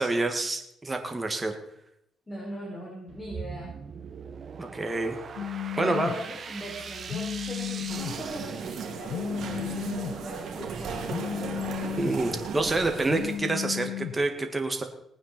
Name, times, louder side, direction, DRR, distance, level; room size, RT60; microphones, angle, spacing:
voice 1, 0.0-1.5 4.6-5.2 5.8-6.1 12.0-14.8, right 2 dB, 20° right, 5 dB, 2.1 m, -27 dB
voice 2, 2.3-3.7 5.7-11.6, equal, 20° left, -4 dB, 5.1 m, -39 dB
sound 1, 3.1-9.4, right 6 dB, 50° right, 1.3 m, -41 dB
Telephone, 5.4-6.1 7.1-8.1 9.1-10.1 11.1-12.1 13.1-14.1, left 11 dB, 80° left, 1.2 m, -33 dB
sound 2, 7.9-13.4, right 6 dB, 70° right, 2.6 m, -36 dB
19.5 x 9.3 x 4.5 m, 0.75 s
cardioid pair, 90°, 0 cm